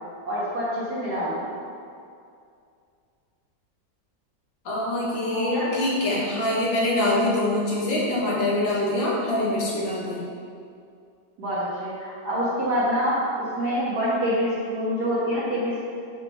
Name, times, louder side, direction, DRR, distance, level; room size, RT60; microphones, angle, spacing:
voice 1, 0.3-1.4 5.3-5.7 11.4-15.9, equal, 60° right, -9 dB, 1.9 m, -26 dB
voice 2, 4.7-10.2, left 1 dB, 85° left, -5 dB, 2.1 m, -24 dB
6.1 x 4.6 x 5.5 m, 2.4 s
omnidirectional pair, 2.0 m